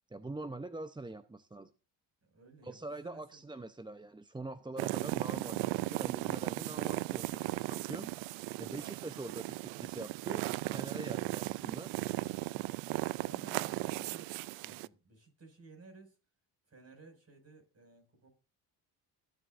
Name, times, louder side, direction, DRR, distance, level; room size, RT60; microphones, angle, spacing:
voice 1, 0.1-1.7 2.6-8.1 8.6-10.4 10.7-11.9, right 2 dB, 10° right, 12 dB, 0.7 m, -44 dB
voice 2, 2.2-3.4 13.1-16.2 16.7-18.3, right 3 dB, 30° right, 4 dB, 6.1 m, -57 dB
sound 1, 4.8-14.9, right 20 dB, 75° right, 0.6 m, -36 dB
22.5 x 8.0 x 2.6 m, 0.31 s
supercardioid pair, 60°, 47 cm